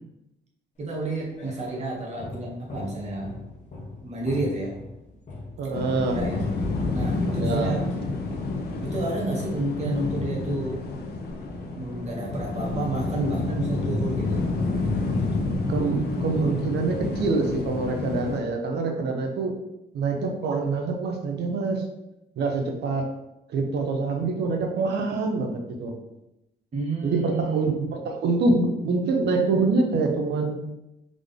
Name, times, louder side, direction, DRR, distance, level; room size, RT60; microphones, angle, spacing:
voice 1, 0.8-3.4 4.0-4.7 6.1-6.4 6.9-7.9 8.8-10.8 11.8-14.4 26.7-27.9, right 2 dB, 40° right, -2 dB, 1.2 m, -30 dB
sound 1, 0.9-9.0, left 2 dB, 40° left, 1.1 m, -42 dB
voice 2, 5.6-6.2 7.3-7.7 15.7-19.5 19.9-21.8 22.4-23.0 23.5-25.9 27.0-30.6, right 3 dB, 65° right, 3 dB, 0.8 m, -25 dB
sound 2, 5.7-18.4, left 3 dB, 60° left, 0.7 m, -29 dB
3.7 x 3.6 x 3.6 m, 0.91 s
cardioid pair, 145°, 18 cm